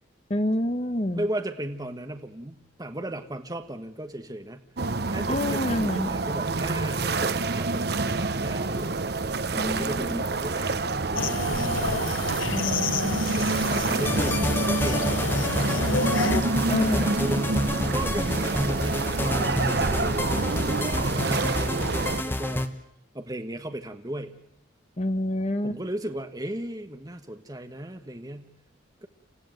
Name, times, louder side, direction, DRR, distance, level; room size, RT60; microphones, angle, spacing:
voice 1, 0.3-1.3 5.3-6.1 9.6-10.2 12.5-13.3 16.7-17.2 25.0-25.8, left 1 dB, 35° left, 10 dB, 1.1 m, -27 dB
voice 2, 1.1-4.6 5.1-12.0 13.1-15.7 16.7-22.7 23.1-24.3 25.6-28.5 29.0-29.1, right 1 dB, 20° right, 7 dB, 1.3 m, -36 dB
sound 1, 4.8-22.2, right 3 dB, 50° right, 0.9 m, -27 dB
sound 2, 11.1-16.4, left 3 dB, 80° left, 1.5 m, -30 dB
sound 3, 14.0-22.7, left 1 dB, 10° left, 1.1 m, -29 dB
29.0 x 15.0 x 9.2 m, 0.77 s
head